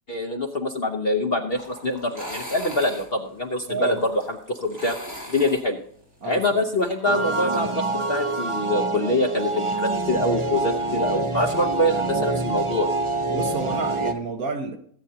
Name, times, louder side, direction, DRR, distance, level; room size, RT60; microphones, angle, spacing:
voice 1, 0.1-4.1 4.5-5.0 5.3-5.8 6.2-12.9, left 1 dB, 40° left, 1.0 m, -25 dB
sound 1, 1.5-7.6, equal, 10° right, 4.6 m, -40 dB
voice 2, 3.7-4.0 6.2-6.6 13.3-14.8, right 4 dB, 55° right, 1.7 m, -29 dB
sound 2, 7.0-14.1, right 3 dB, 25° right, 0.6 m, -26 dB
21.0 x 8.9 x 2.8 m
omnidirectional pair, 1.9 m